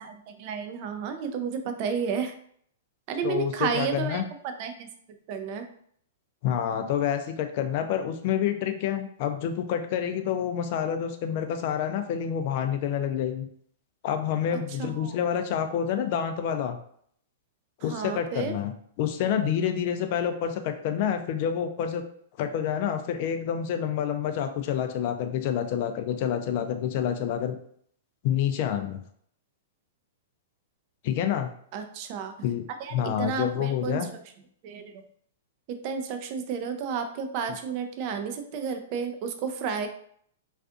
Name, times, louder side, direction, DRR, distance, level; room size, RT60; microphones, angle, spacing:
voice 1, 0.0-2.3 3.1-4.2 4.6-4.9 5.3-5.6 14.5-15.2 17.9-18.5 31.7-32.3 32.8-34.0 34.6-34.9 35.7-39.9, right 6 dB, 45° right, 6 dB, 0.4 m, -32 dB
voice 2, 3.2-4.2 6.4-13.5 14.0-16.8 17.8-18.7 19.0-22.0 22.4-27.6 28.2-29.0 31.0-31.5 32.4-32.6 32.9-34.1, left 9 dB, 50° left, 7 dB, 0.4 m, -28 dB
2.5 x 2.4 x 2.4 m, 0.63 s
hypercardioid pair, 130°, 0 cm